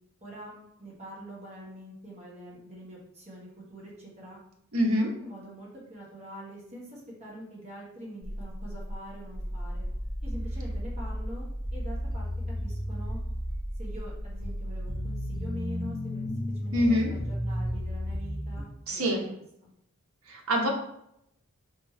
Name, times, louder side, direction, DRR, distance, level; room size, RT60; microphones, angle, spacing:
voice 1, 0.2-4.4 4.9-9.8 10.2-12.3 12.6-13.2 13.7-16.3 16.5-19.3 19.6-19.7, equal, 30° right, -5 dB, 1.4 m, -45 dB
voice 2, 4.7-5.1 16.7-17.1 18.9-19.2 20.3-20.7, equal, 75° right, 0 dB, 0.9 m, -25 dB
sound 1, 8.2-18.6, equal, ahead, 1.6 m, -34 dB
4.2 x 3.1 x 3.2 m, 0.77 s
head